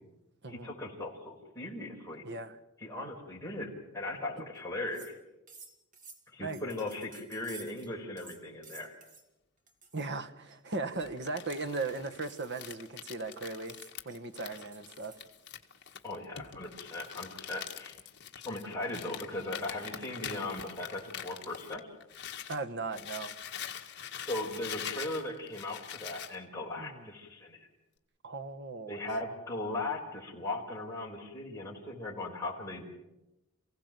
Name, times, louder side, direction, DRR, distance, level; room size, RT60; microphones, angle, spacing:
voice 1, 0.5-2.2 2.8-5.2 6.3-9.0 16.0-18.0 18.4-21.8 24.2-27.7 28.9-32.9, left 2 dB, 15° left, -2 dB, 4.8 m, -38 dB
voice 2, 2.2-2.6 4.4-4.5 6.4-6.7 9.9-13.8 14.0-15.2 22.5-23.3 26.8-27.1 28.2-29.0, right 3 dB, 55° right, 8 dB, 1.5 m, -37 dB
sound 1, 4.6-4.7 4.9-5.2 5.5-7.9 8.2-9.3 9.7-10.1 10.5-15.2, right 4 dB, 40° right, 2.5 m, -54 dB
Crumpling crinkling, 11.0-22.6 22.9-26.4, left 9 dB, 55° left, 1.8 m, -44 dB
28.5 x 16.5 x 7.6 m, 0.96 s
head